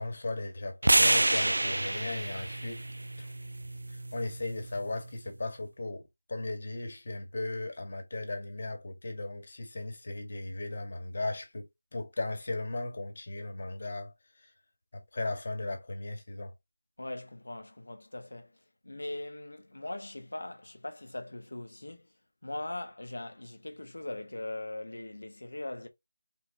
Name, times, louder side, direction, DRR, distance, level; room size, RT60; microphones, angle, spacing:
voice 1, 0.0-2.8 3.2-3.3 3.9-14.1 14.4-14.5 14.9-16.5, left 2 dB, 50° left, 1.7 m, -37 dB
sound 1, 0.8-5.0, right 1 dB, 85° right, 0.4 m, -28 dB
voice 2, 17.0-18.6 18.8-22.1 22.4-25.9, left 1 dB, 80° left, 1.3 m, -40 dB
5.7 x 2.9 x 2.9 m
figure-of-eight pair, 170°, 0 cm